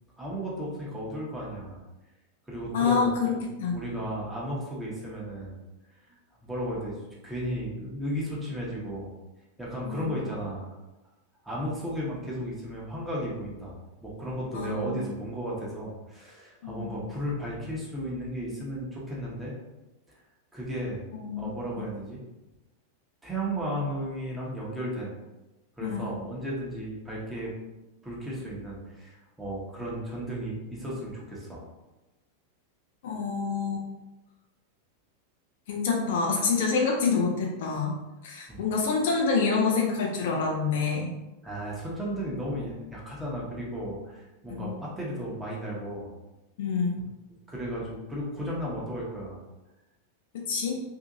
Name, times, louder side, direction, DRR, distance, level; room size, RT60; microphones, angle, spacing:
voice 1, 0.2-1.8 2.5-3.1 3.7-5.5 6.4-9.2 9.6-10.7 11.4-13.8 14.0-19.6 20.5-21.0 21.4-22.2 23.2-25.1 25.8-27.5 28.0-31.6 38.5-38.6 41.4-46.1 47.5-49.4, equal, 10° right, -5 dB, 0.9 m, -34 dB
voice 2, 2.7-3.8 9.8-10.1 14.5-15.0 16.6-17.0 21.1-21.5 21.8-21.9 25.8-26.1 33.0-33.9 35.7-38.0 38.2-41.1 44.5-44.7 46.6-47.0 50.3-50.8, left 4 dB, 55° left, -1 dB, 0.5 m, -27 dB
2.7 x 2.6 x 2.4 m, 1.0 s
figure-of-eight pair, 90°, 0 cm